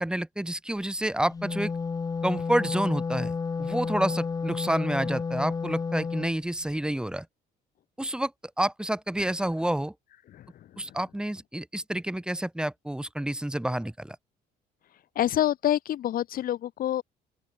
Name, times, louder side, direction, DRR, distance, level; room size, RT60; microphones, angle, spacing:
voice 1, 0.0-1.7 2.2-3.3 3.6-7.3 8.0-8.3 8.6-9.9 10.8-14.2, right 1 dB, 5° right, 2.1 m, -29 dB
Wind instrument woodwind instrument, 1.2-6.4, left 4 dB, 20° left, 0.7 m, -31 dB
voice 2, 10.3-11.0 15.1-17.0, left 12 dB, 60° left, 1.2 m, -27 dB
open air
cardioid pair, 110°, 17 cm